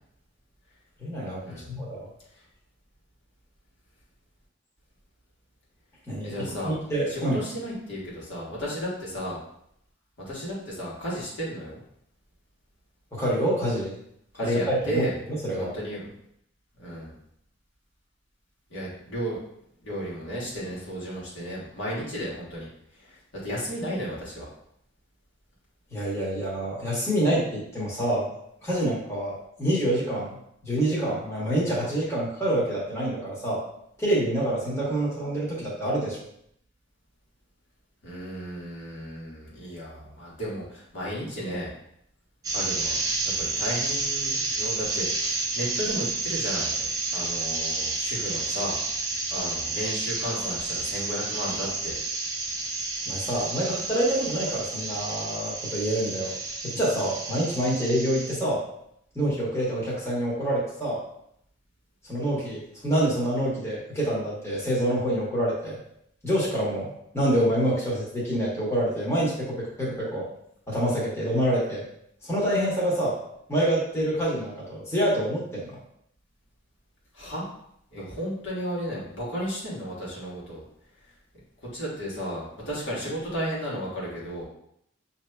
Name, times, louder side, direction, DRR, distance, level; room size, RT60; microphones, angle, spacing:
voice 1, 1.0-2.1 6.1-6.3 6.6-7.4 13.1-13.9 14.4-15.7 25.9-28.3 28.6-30.3 30.6-33.6 34.0-36.2 53.1-56.3 56.6-58.6 59.1-61.0 62.1-65.8 66.2-70.3 70.7-71.8 72.2-73.2 73.5-75.8, right 1 dB, 15° left, -7 dB, 1.1 m, -26 dB
voice 2, 6.2-6.8 7.1-9.4 10.3-11.8 14.3-15.2 15.5-16.1 16.8-17.1 18.7-19.4 19.8-22.7 22.9-24.5 38.0-41.7 42.5-48.8 49.3-52.0 77.1-77.5 77.9-80.6 81.7-84.4, equal, 70° left, -6 dB, 1.4 m, -34 dB
sound 1, 42.4-58.4, right 3 dB, 20° right, 0.5 m, -30 dB
6.3 x 2.7 x 2.2 m, 0.72 s
head